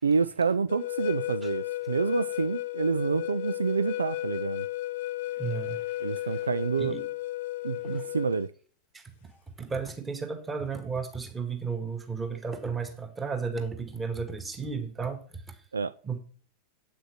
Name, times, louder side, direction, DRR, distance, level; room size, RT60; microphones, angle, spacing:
voice 1, 0.0-4.7 6.0-7.0 7.6-8.5 15.7-15.9, right 5 dB, 75° right, 0.3 m, -28 dB
sound 1, 0.7-8.5, left 16 dB, 55° left, 0.4 m, -34 dB
voice 2, 5.4-5.8 6.2-6.3 6.8-7.1 7.8-8.1 8.9-9.3 9.6-15.6 16.0-16.2, right 5 dB, 15° right, 1.8 m, -34 dB
8.2 x 6.3 x 6.2 m
figure-of-eight pair, 90°, 0 cm